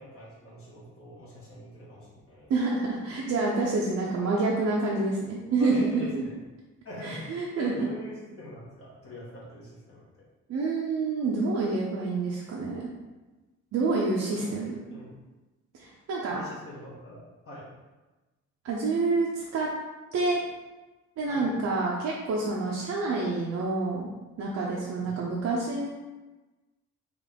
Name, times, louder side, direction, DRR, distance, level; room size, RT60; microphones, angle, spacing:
voice 1, 0.0-2.5 5.6-6.3 6.8-10.2 14.2-14.5 14.9-15.1 16.3-17.7 21.3-21.5 24.9-25.2, left 1 dB, 50° left, -7 dB, 1.3 m, -44 dB
voice 2, 2.5-6.2 7.0-7.9 10.5-12.9 13.7-14.8 15.7-16.4 18.6-19.7 20.1-20.4 21.2-24.1 24.4-25.9, right 3 dB, 60° right, -4 dB, 0.7 m, -28 dB
3.7 x 2.5 x 3.4 m, 1.2 s
cardioid pair, 90°, 30 cm